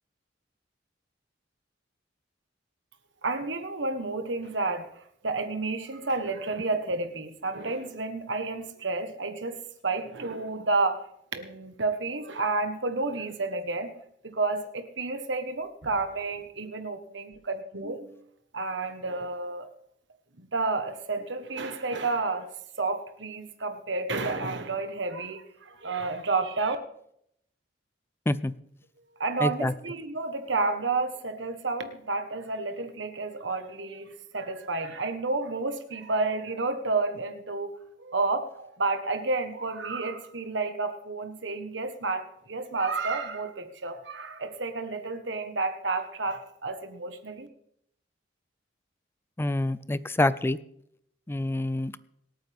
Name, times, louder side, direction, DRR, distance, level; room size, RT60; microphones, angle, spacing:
voice 1, 3.2-11.0 11.3-13.9 14.2-18.2 18.5-19.7 20.4-22.5 22.8-26.8 29.2-47.5, right 3 dB, 75° right, 8 dB, 1.4 m, -31 dB
voice 2, 29.4-29.7 49.4-50.6 51.3-52.0, left 1 dB, 15° left, 17 dB, 0.4 m, -26 dB
25.5 x 9.1 x 3.6 m, 0.72 s
head